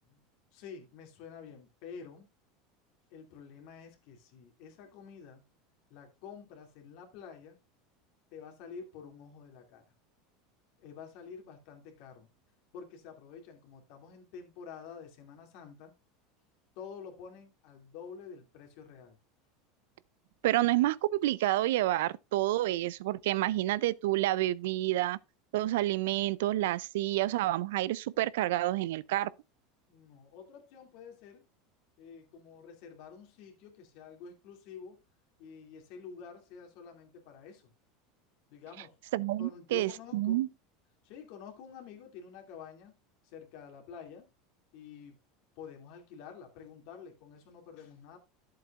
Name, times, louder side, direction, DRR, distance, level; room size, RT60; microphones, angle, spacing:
voice 1, 0.5-2.3 3.1-5.4 5.9-7.6 8.3-9.8 10.8-12.3 12.7-15.9 16.8-19.2 29.9-31.4 32.0-35.0 35.4-37.7 38.5-39.0 39.4-40.5 41.0-42.9 43.2-44.3 44.7-45.2 45.6-48.2, left 6 dB, 65° left, 2.4 m, -49 dB
voice 2, 20.4-25.2 25.5-29.3 39.1-40.5, right 16 dB, 75° right, 0.3 m, -29 dB
11.5 x 7.7 x 2.4 m
supercardioid pair, 105°, 0 cm